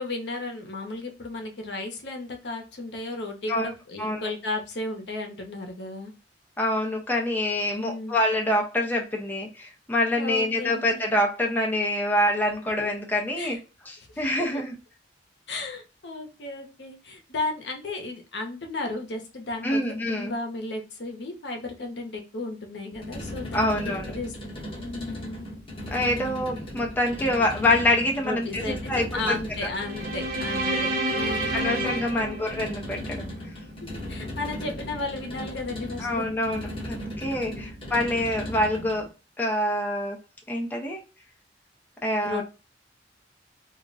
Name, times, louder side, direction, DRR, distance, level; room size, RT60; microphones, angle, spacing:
voice 1, 0.0-6.1 7.7-8.2 10.2-11.0 13.4-13.6 14.1-14.2 15.5-25.5 28.2-31.5 33.8-36.3 37.4-37.7 42.2-42.4, left 2 dB, 65° left, 4 dB, 0.7 m, -34 dB
voice 2, 6.6-13.6 13.9-14.7 19.6-20.3 23.5-24.1 25.9-29.3 31.5-33.2 36.0-39.1 39.4-40.2 40.5-41.0 42.0-42.4, left 1 dB, 10° left, 0 dB, 0.4 m, -26 dB
sound 1, 22.9-39.1, equal, 30° left, 0.9 m, -37 dB
sound 2, 29.8-33.2, right 1 dB, 55° right, 0.8 m, -29 dB
2.3 x 2.1 x 3.8 m, 0.33 s
head